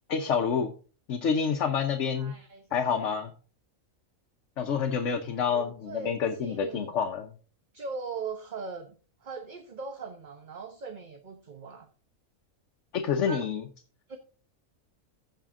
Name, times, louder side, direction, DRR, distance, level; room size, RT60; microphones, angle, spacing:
voice 1, 0.1-0.7 1.1-2.3 2.7-3.3 4.6-7.3 12.9-13.6, left 6 dB, 65° left, 5 dB, 1.2 m, -28 dB
voice 2, 2.2-3.1 5.4-6.9 7.7-9.0 9.2-11.9 13.3-13.5 14.1-14.2, right 4 dB, 40° right, 6 dB, 0.9 m, -40 dB
15.0 x 5.1 x 3.7 m, 0.38 s
omnidirectional pair, 1.4 m